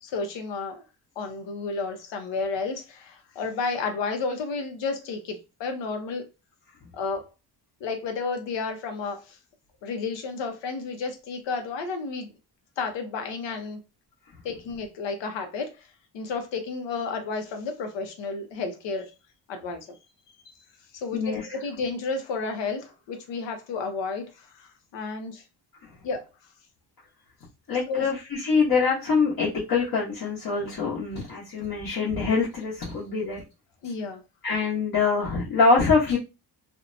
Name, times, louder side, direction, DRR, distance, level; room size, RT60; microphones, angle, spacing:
voice 1, 0.0-0.8 1.2-6.2 6.9-7.3 7.8-9.4 9.8-12.3 12.8-13.8 14.4-15.9 16.1-19.1 19.5-20.0 20.5-20.6 20.9-25.4 26.0-26.3 27.9-28.1 33.8-34.2, left 4 dB, 85° left, 0.8 m, -32 dB
voice 2, 21.1-21.5 27.7-33.4 34.4-36.2, left 4 dB, 55° left, 1.0 m, -24 dB
2.6 x 2.1 x 2.5 m
cardioid pair, 135°, 42 cm